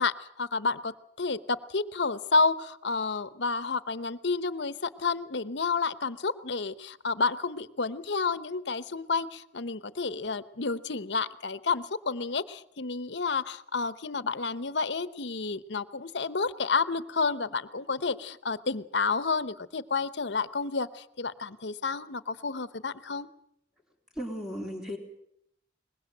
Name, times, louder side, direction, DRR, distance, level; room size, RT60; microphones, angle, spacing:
voice 1, 0.0-23.3, left 4 dB, 70° left, 14 dB, 1.0 m, -30 dB
voice 2, 24.1-25.0, equal, 5° right, 2 dB, 3.8 m, -35 dB
23.0 x 20.5 x 7.8 m, 0.74 s
head